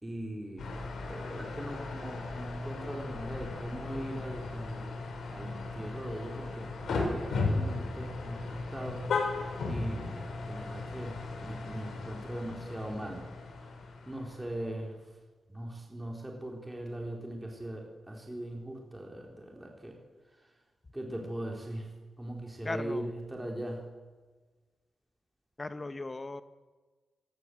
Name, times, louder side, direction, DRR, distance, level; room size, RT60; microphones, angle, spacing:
voice 1, 0.0-5.0 5.3-9.0 9.7-13.3 13.6-13.7 14.1-14.9 15.5-20.0 20.3-20.5 20.9-21.9 22.2-23.9, right 1 dB, 10° right, 0 dB, 3.7 m, -40 dB
sound 1, 0.6-14.9, left 3 dB, 75° left, 6.2 m, -36 dB
voice 2, 22.6-23.1 25.6-26.4, left 2 dB, 20° left, 11 dB, 1.3 m, -37 dB
27.0 x 19.5 x 7.8 m, 1.3 s
wide cardioid pair, 145°, 0 cm